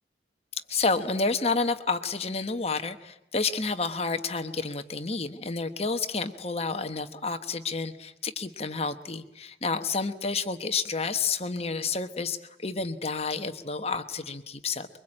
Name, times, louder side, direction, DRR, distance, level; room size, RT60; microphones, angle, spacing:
voice 1, 0.7-14.9, left 4 dB, 35° left, 8 dB, 1.1 m, -30 dB
25.0 x 23.5 x 8.8 m, 0.83 s
head